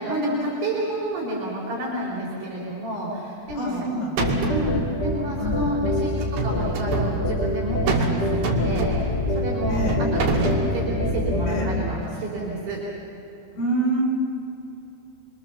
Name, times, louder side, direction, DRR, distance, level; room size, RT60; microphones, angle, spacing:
voice 1, 0.0-3.8 4.5-9.8 10.1-12.8, right 1 dB, 65° right, -6 dB, 5.9 m, -30 dB
sound 1, 3.5-3.9 4.2-4.7 6.2-7.1 7.9-8.2 8.4-9.2 9.9-10.7, right 3 dB, 85° right, 4.5 m, -25 dB
voice 2, 3.6-4.7 5.4-5.8 9.7-10.0 11.5-11.7 13.6-14.0, right 1 dB, 65° left, -3 dB, 7.1 m, -27 dB
sound 2, 4.2-11.8, left 1 dB, 35° left, 0.7 m, -26 dB
25.5 x 25.0 x 7.3 m, 2.7 s
omnidirectional pair, 4.6 m